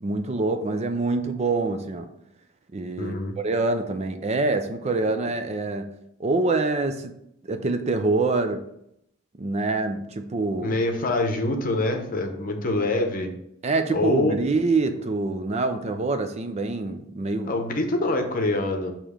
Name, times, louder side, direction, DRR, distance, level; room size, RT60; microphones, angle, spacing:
voice 1, 0.0-2.1 2.7-3.1 3.4-7.1 7.5-8.7 9.4-10.7 13.6-17.5, right 3 dB, 35° right, 0.4 m, -25 dB
voice 2, 3.0-3.4 10.6-13.3 13.9-14.4 17.4-18.9, left 2 dB, 45° left, 0.8 m, -25 dB
6.7 x 3.0 x 5.0 m
head